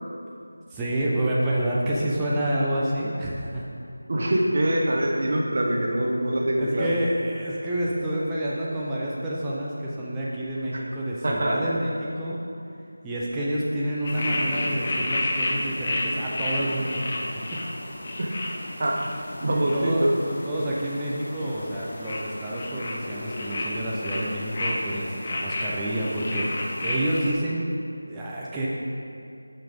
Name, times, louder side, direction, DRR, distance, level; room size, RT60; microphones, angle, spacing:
voice 1, 0.7-3.6 6.6-12.4 13.0-17.0 17.3-17.4 18.8-19.0 19.5-27.6 28.1-28.7, right 1 dB, 10° right, -7 dB, 0.6 m, -28 dB
voice 2, 4.1-6.9 10.7-10.8 11.2-11.6 18.2-18.3 18.8-19.0 19.4-20.1, right 1 dB, 45° right, -1 dB, 1.1 m, -24 dB
sound 1, 14.0-27.3, left 1 dB, 35° left, 0.7 m, -31 dB
8.5 x 5.8 x 3.6 m, 2.5 s
figure-of-eight pair, 170°, 0 cm